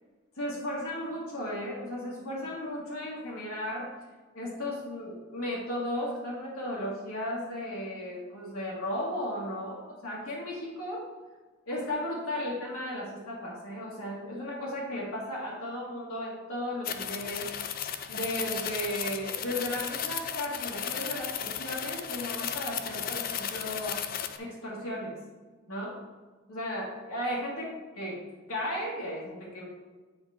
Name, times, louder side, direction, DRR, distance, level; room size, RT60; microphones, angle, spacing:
voice 1, 0.4-3.9 4.3-11.0 11.7-17.7 18.1-24.0 24.4-25.1 25.7-25.9 26.5-28.2 28.5-29.7, left 1 dB, 90° left, -6 dB, 1.8 m, -35 dB
sound 1, 16.8-24.4, left 8 dB, 45° left, 0.4 m, -35 dB
8.7 x 4.7 x 3.6 m, 1.3 s
head